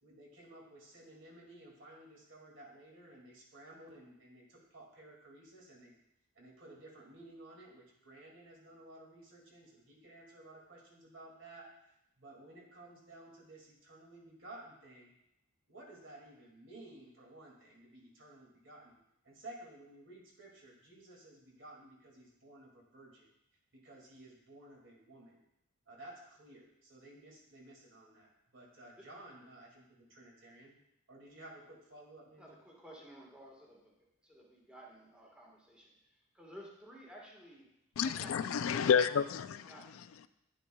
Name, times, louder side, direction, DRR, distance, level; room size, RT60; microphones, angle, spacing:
voice 1, 0.0-6.0 6.3-15.1 15.7-19.0 19.2-23.3 23.7-25.4 25.9-30.8 31.1-32.6, right 1 dB, 60° right, 2.3 m, -55 dB
voice 2, 32.4-33.9 34.2-35.9 36.3-37.7 38.0-38.7 39.0-39.1 39.7-40.0, equal, 5° right, 1.4 m, -54 dB
voice 3, 38.0-40.3, left 7 dB, 75° left, 0.4 m, -31 dB
10.0 x 9.6 x 2.3 m
head